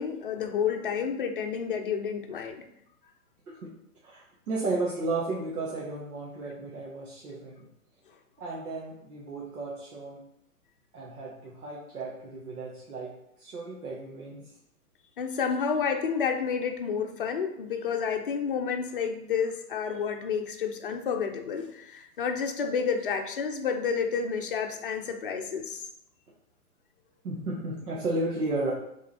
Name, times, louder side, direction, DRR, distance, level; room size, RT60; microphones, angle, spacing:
voice 1, 0.0-2.6 15.2-25.9, left 6 dB, 35° left, 4 dB, 0.7 m, -30 dB
voice 2, 4.0-7.7 8.4-10.2 10.9-13.1 13.4-14.5 27.2-28.7, right 2 dB, 70° right, -5 dB, 1.7 m, -33 dB
6.4 x 3.9 x 4.2 m, 0.77 s
hypercardioid pair, 165°, 46 cm